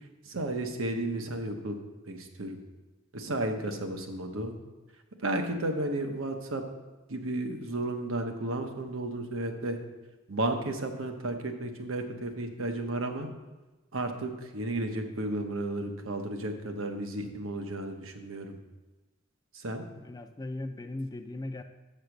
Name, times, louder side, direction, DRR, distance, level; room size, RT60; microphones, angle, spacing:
voice 1, 0.2-1.8 2.1-2.6 3.1-4.5 5.2-6.6 7.1-9.8 10.3-13.3 13.9-18.6 19.5-19.8, right 1 dB, 85° right, 5 dB, 1.0 m, -33 dB
voice 2, 19.9-21.6, left 2 dB, 20° left, 6 dB, 0.4 m, -38 dB
6.5 x 6.0 x 6.5 m, 1.1 s
head